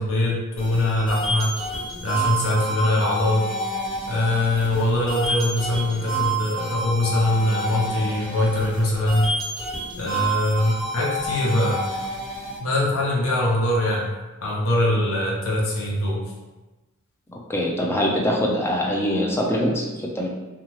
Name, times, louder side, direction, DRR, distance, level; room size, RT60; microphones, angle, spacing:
voice 1, 0.0-1.5 2.0-3.5 4.1-9.3 10.0-11.8 12.6-14.1 14.4-16.2, left 1 dB, 75° left, -4 dB, 0.7 m, -22 dB
sound 1, 0.6-12.6, right 1 dB, 30° left, 0.9 m, -29 dB
voice 2, 17.3-20.3, equal, 10° left, -2 dB, 0.4 m, -23 dB
2.6 x 2.3 x 3.1 m, 1.2 s
head